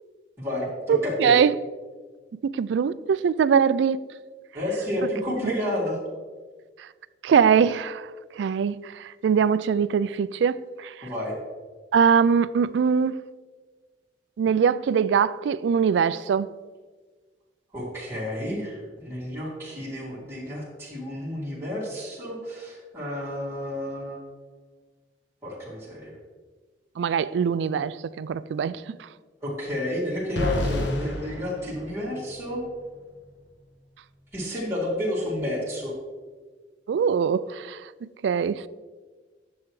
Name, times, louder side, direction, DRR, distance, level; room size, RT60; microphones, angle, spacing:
voice 1, 0.4-0.7 1.0-1.3 4.5-6.0 11.0-11.3 17.7-24.2 25.4-26.1 29.4-32.6 34.3-35.9, left 1 dB, 15° right, 2.5 m, -30 dB
voice 2, 0.9-1.5 2.4-4.0 5.4-5.5 7.2-8.1 8.4-10.9 11.9-13.1 14.4-16.5 27.0-28.8 36.9-37.8 38.2-38.7, right 6 dB, 80° right, 0.3 m, -22 dB
sound 1, 30.4-32.5, left 1 dB, 85° left, 1.2 m, -30 dB
11.0 x 7.1 x 3.2 m
head